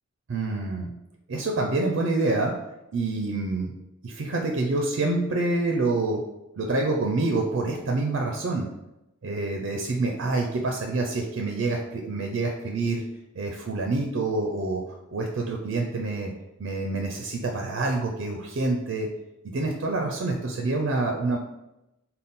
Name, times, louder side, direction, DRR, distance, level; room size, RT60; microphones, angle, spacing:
voice 1, 0.3-0.9 1.3-2.5 2.9-3.7 4.0-6.2 6.6-8.7 9.2-13.0 13.4-14.8 15.1-16.3 16.6-19.1 19.4-21.4, right 2 dB, 60° right, 1 dB, 0.4 m, -27 dB
4.0 x 2.1 x 3.6 m, 0.92 s
head